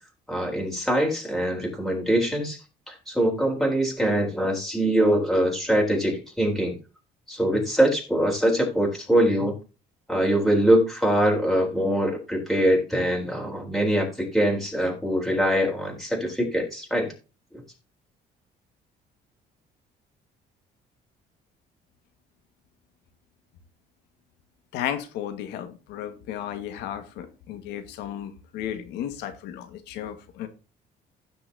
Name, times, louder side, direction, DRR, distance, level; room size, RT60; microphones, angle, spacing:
voice 1, 0.3-2.6 2.9-6.7 7.3-9.6 10.1-17.1 17.5-17.6, right 1 dB, ahead, 0 dB, 4.0 m, -23 dB
voice 2, 24.7-30.5, left 10 dB, 90° left, 9 dB, 1.8 m, -34 dB
16.5 x 5.9 x 2.8 m, 0.32 s
cardioid pair, 110°, 17 cm